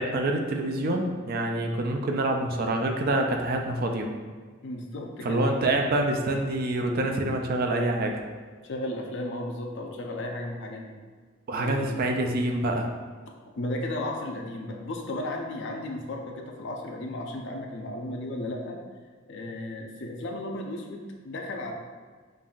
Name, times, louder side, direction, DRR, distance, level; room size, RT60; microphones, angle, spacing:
voice 1, 0.0-4.1 5.2-8.2 11.5-12.9, right 1 dB, 50° right, 3 dB, 0.4 m, -26 dB
voice 2, 4.6-5.5 8.6-11.0 11.6-12.0 13.6-18.8 19.3-21.7, left 1 dB, 65° left, 1 dB, 0.5 m, -34 dB
5.3 x 2.5 x 2.4 m, 1.5 s
head